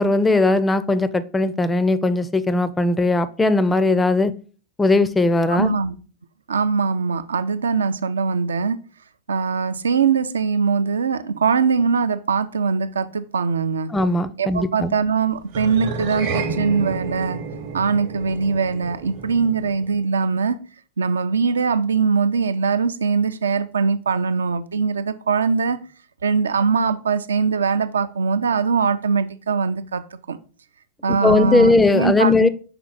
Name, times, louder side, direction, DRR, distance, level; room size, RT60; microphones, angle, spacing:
voice 1, 0.0-4.3 4.8-5.7 13.9-14.9 31.1-32.5, left 2 dB, 10° left, 0.4 m, -18 dB
voice 2, 5.5-5.9 6.5-8.8 9.3-13.9 14.4-17.4 17.7-20.6 21.0-25.8 26.2-30.0 30.3-30.4 31.0-32.5, right 5 dB, 70° right, 0.4 m, -21 dB
sound 1, 15.5-20.1, right 4 dB, 50° right, 0.9 m, -30 dB
5.9 x 4.4 x 3.8 m
figure-of-eight pair, 90°, 0 cm